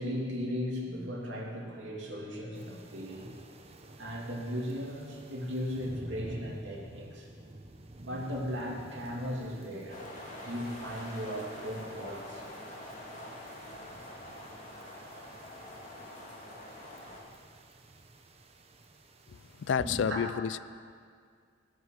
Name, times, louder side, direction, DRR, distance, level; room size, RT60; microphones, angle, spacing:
voice 1, 0.0-3.3 4.0-7.3 8.0-12.4 19.8-20.2, equal, 80° right, -2 dB, 2.7 m, -37 dB
sound 1, 2.5-19.8, right 1 dB, 35° right, 0.8 m, -51 dB
sound 2, 9.9-17.2, left 1 dB, 40° left, 2.4 m, -45 dB
voice 2, 19.3-20.6, left 7 dB, 75° left, 17 dB, 0.4 m, -30 dB
17.0 x 8.0 x 6.5 m, 2.1 s
head